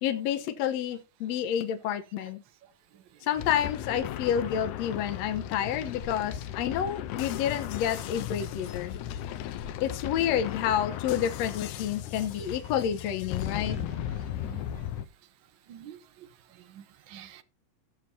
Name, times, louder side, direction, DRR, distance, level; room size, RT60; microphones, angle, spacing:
voice 1, 0.0-2.4 3.2-8.9 9.8-13.8, left 9 dB, 70° left, 2.0 m, -29 dB
sound 1, 3.4-15.1, left 11 dB, 85° left, 2.2 m, -36 dB
voice 2, 13.7-14.6 15.7-17.4, right 9 dB, 65° right, 1.2 m, -48 dB
16.5 x 7.4 x 2.7 m
omnidirectional pair, 3.3 m